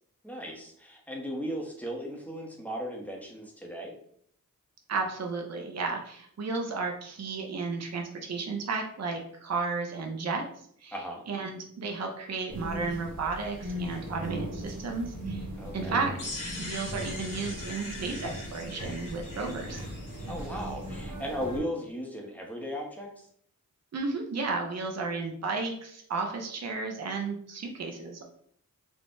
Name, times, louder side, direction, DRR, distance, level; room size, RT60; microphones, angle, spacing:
voice 1, 0.2-3.9 10.9-11.2 15.6-16.0 20.3-23.1, equal, 5° left, -1 dB, 0.7 m, -36 dB
voice 2, 4.9-10.4 10.8-10.9 11.3-15.5 15.7-16.1 16.6-19.8 23.9-28.3, right 4 dB, 50° right, 2 dB, 0.5 m, -33 dB
sound 1, 12.5-21.6, equal, 90° right, 1.0 m, -38 dB
sound 2, 16.2-21.0, left 2 dB, 65° left, 0.9 m, -42 dB
3.4 x 2.0 x 2.5 m, 0.63 s
wide cardioid pair, 55°, 34 cm